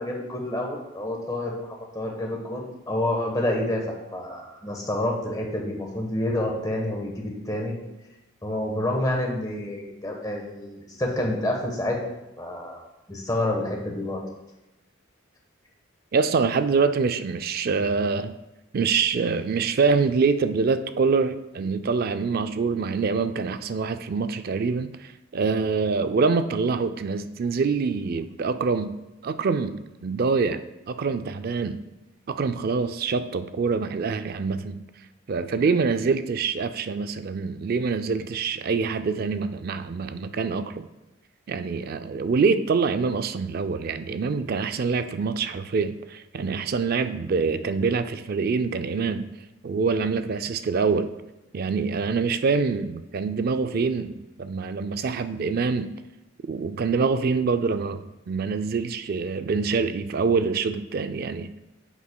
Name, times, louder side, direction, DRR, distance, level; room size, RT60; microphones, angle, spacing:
voice 1, 0.0-7.7 8.4-12.1 12.4-12.8 13.1-14.2, left 1 dB, 20° left, 0 dB, 1.1 m, -28 dB
voice 2, 16.1-18.4 18.7-29.0 29.2-31.8 32.3-34.8 35.3-40.9 41.5-49.3 49.6-51.1 51.5-55.9 56.4-61.5, right 4 dB, 45° right, 11 dB, 0.3 m, -25 dB
9.3 x 7.0 x 2.2 m, 0.95 s
head